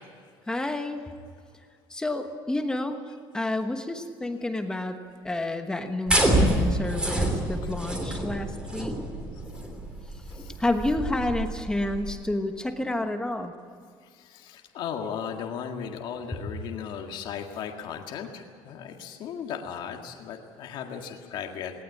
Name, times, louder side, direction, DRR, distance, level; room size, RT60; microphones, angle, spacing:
voice 1, 0.5-1.0 1.9-3.0 3.3-5.0 5.2-9.0 10.6-13.5, left 2 dB, 5° left, 6 dB, 1.2 m, -29 dB
sound 1, 6.1-12.1, right 1 dB, 10° right, 3.1 m, -27 dB
voice 2, 14.2-21.7, left 7 dB, 50° left, 3 dB, 1.9 m, -36 dB
19.0 x 19.0 x 8.5 m, 2.2 s
cardioid pair, 170°, 10 cm